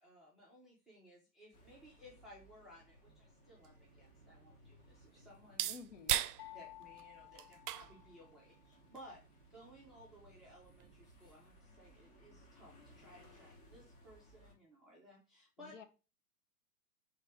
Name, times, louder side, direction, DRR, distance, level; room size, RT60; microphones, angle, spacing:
voice 1, 0.0-5.7 6.5-9.2 9.5-15.7, equal, ahead, -4 dB, 0.5 m, -59 dB
sound 1, 1.5-14.5, equal, 30° left, 1.2 m, -63 dB
sound 2, 3.1-11.1, right 11 dB, 70° right, 0.5 m, -43 dB
voice 2, 5.7-6.2 15.6-15.8, left 5 dB, 50° left, 9 dB, 0.8 m, -52 dB
sound 3, 6.4-8.5, left 17 dB, 80° left, 0.9 m, -55 dB
3.3 x 3.2 x 4.8 m, 0.33 s
hypercardioid pair, 125°, 47 cm